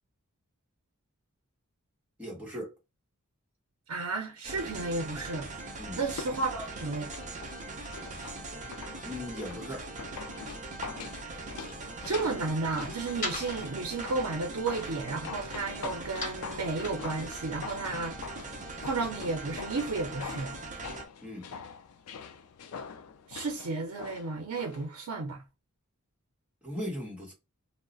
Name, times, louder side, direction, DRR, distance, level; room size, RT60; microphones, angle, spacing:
voice 1, 2.2-2.7 5.8-6.0 9.0-9.9 21.2-21.5 26.6-27.3, left 1 dB, 5° right, 1.1 m, -38 dB
voice 2, 3.9-7.1 12.0-18.4 18.8-20.5 23.3-25.4, right 3 dB, 90° right, 0.5 m, -33 dB
sound 1, 4.4-21.1, right 3 dB, 35° right, 0.5 m, -41 dB
sound 2, 6.0-24.9 25.2-25.3, left 6 dB, 80° left, 0.4 m, -45 dB
sound 3, 11.4-17.8, left 2 dB, 35° left, 1.2 m, -44 dB
2.3 x 2.0 x 3.7 m
head